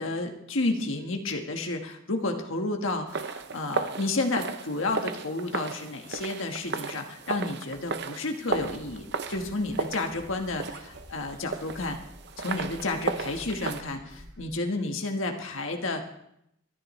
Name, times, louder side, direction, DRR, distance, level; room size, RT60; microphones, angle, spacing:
voice 1, 0.0-12.0 12.4-16.0, left 2 dB, 70° left, 3 dB, 1.4 m, -31 dB
sound 1, 3.1-13.8, right 4 dB, 55° right, 0.7 m, -35 dB
sound 2, 8.5-14.5, equal, 80° right, 5.2 m, -50 dB
24.5 x 10.0 x 3.2 m, 0.77 s
head